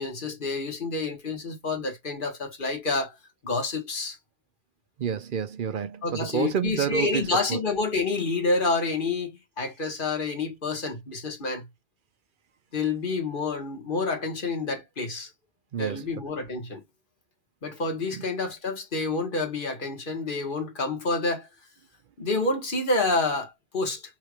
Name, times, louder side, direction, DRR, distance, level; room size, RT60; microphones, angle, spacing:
voice 1, 0.0-3.1 3.4-4.2 6.0-11.7 12.7-15.3 15.8-16.8 17.6-21.5 22.2-24.0, left 3 dB, 55° left, 1.6 m, -28 dB
voice 2, 5.0-7.2 15.7-16.0 18.1-18.2, right 8 dB, 60° right, 0.7 m, -29 dB
5.8 x 3.2 x 2.3 m
omnidirectional pair, 1.1 m